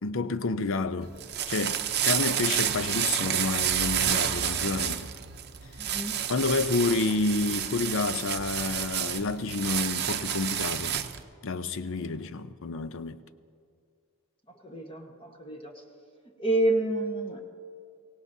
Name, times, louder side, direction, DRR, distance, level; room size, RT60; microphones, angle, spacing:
voice 1, 0.0-1.1 1.5-5.1 6.3-11.0 11.4-13.2, left 3 dB, 65° left, 0.6 m, -29 dB
sound 1, 1.0-11.2, right 10 dB, 50° right, 0.7 m, -30 dB
voice 2, 5.8-6.1 12.0-12.3 14.6-15.7 16.4-17.4, right 2 dB, 25° left, 1.2 m, -29 dB
23.5 x 17.5 x 2.7 m
head